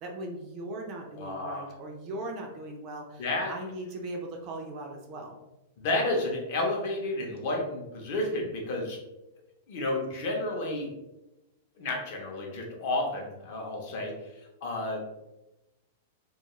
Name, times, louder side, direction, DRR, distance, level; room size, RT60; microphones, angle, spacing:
voice 1, 0.0-5.4, right 1 dB, 30° right, 1 dB, 0.4 m, -39 dB
voice 2, 1.2-1.7 3.2-3.5 5.8-9.0 9.7-10.9 11.8-14.3 14.6-15.1, left 2 dB, 40° left, 0 dB, 0.6 m, -31 dB
2.3 x 2.3 x 2.9 m, 0.97 s
supercardioid pair, 175°, 0 cm